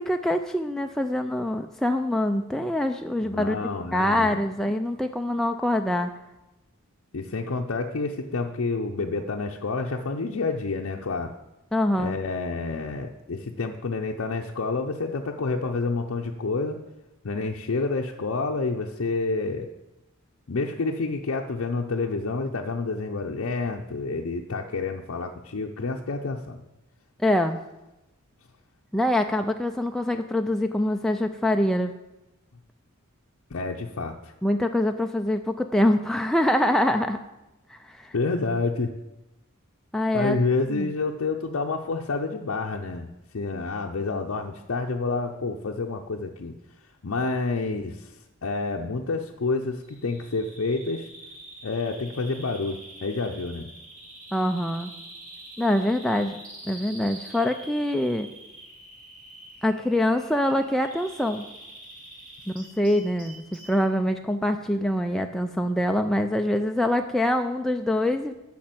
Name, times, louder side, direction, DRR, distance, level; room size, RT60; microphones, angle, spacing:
voice 1, 0.0-3.6 3.9-6.1 11.7-12.2 27.2-27.6 28.9-31.9 34.4-37.2 37.7-38.1 39.9-40.4 40.7-40.9 54.3-54.9 55.6-56.4 56.6-58.3 59.6-61.4 62.5-68.3, left 1 dB, ahead, 4 dB, 0.3 m, -24 dB
voice 2, 3.2-4.4 7.1-11.3 12.0-16.8 17.2-19.7 20.5-26.6 33.5-34.3 38.1-38.9 40.1-43.1 43.3-46.6 47.0-48.1 48.4-51.1 51.6-53.7, left 3 dB, 65° left, 0 dB, 0.6 m, -28 dB
Bird vocalization bird call bird song, 49.8-63.8, right 1 dB, 40° right, 2.7 m, -46 dB
8.5 x 5.9 x 7.7 m, 0.98 s
head